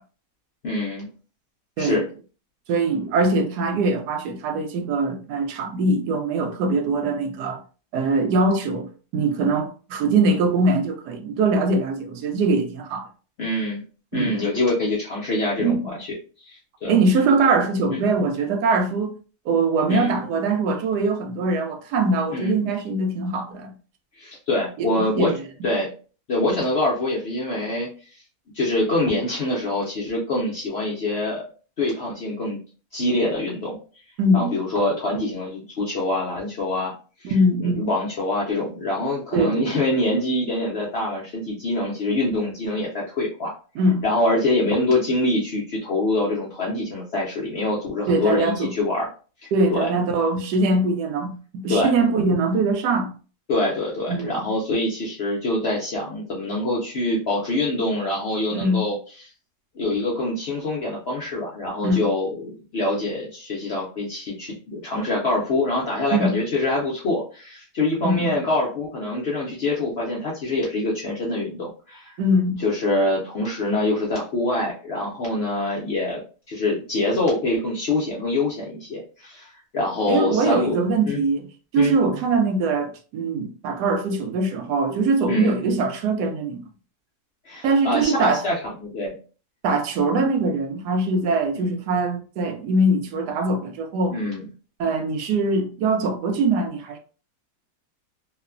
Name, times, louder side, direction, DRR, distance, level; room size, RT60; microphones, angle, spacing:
voice 1, 0.6-1.1 1.8-2.0 13.4-13.8 14.1-16.1 16.4-16.9 17.9-18.0 19.9-20.2 22.3-22.6 24.2-25.3 25.6-25.9 26.3-27.9 28.5-31.4 31.8-32.6 32.9-33.8 34.3-36.9 37.2-37.3 37.6-43.5 44.0-49.1 49.7-49.9 51.7-51.9 53.5-58.9 59.8-72.1 72.6-76.2 76.5-79.5 79.7-80.8 81.1-81.2 81.8-81.9 85.3-85.6 87.5-89.2 91.5-91.7 94.1-94.5, left 2 dB, 65° left, 0.6 m, -25 dB
voice 2, 2.7-7.6 7.9-13.1 14.1-14.4 15.6-15.9 16.9-19.2 19.5-23.7 24.8-25.4 34.2-34.6 37.2-37.9 39.3-39.7 43.8-44.0 48.1-48.7 49.5-53.1 54.1-54.5 58.5-58.8 61.8-62.1 66.1-66.4 68.0-68.4 72.2-72.6 80.1-81.5 81.7-86.6 87.6-88.4 89.6-94.2 94.8-97.0, right 2 dB, 90° right, 1.2 m, -22 dB
3.0 x 2.1 x 2.3 m
omnidirectional pair, 1.7 m